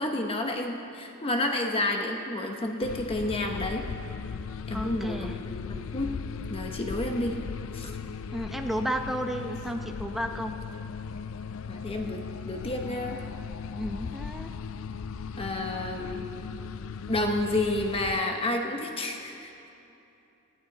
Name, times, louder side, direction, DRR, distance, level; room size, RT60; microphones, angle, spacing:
voice 1, 0.0-3.9 4.7-6.1 6.5-7.4 7.7-7.9 11.7-13.2 15.4-16.3 17.1-19.5, left 1 dB, 25° left, 3 dB, 0.9 m, -30 dB
sound 1, 2.8-18.2, left 6 dB, 70° left, 0.4 m, -37 dB
voice 2, 4.7-5.4 8.3-10.5 13.7-14.5, equal, ahead, 5 dB, 0.6 m, -33 dB
21.0 x 15.0 x 4.0 m, 2.8 s
head